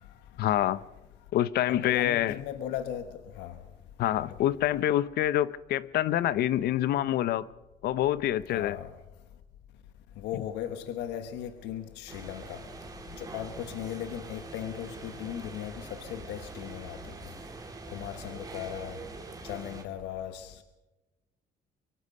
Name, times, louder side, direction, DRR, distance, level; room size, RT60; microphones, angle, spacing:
voice 1, 0.4-0.8 1.3-2.3 4.0-7.5 7.8-8.8, left 12 dB, 70° left, 0.7 m, -26 dB
voice 2, 1.7-3.6 4.1-4.4 8.5-8.9 10.2-12.6 13.1-17.0 17.9-19.0 19.4-20.6, left 10 dB, 90° left, 1.2 m, -37 dB
sound 1, 12.1-19.8, right 3 dB, 20° right, 2.8 m, -44 dB
23.5 x 23.5 x 5.4 m
cardioid pair, 110°, 17 cm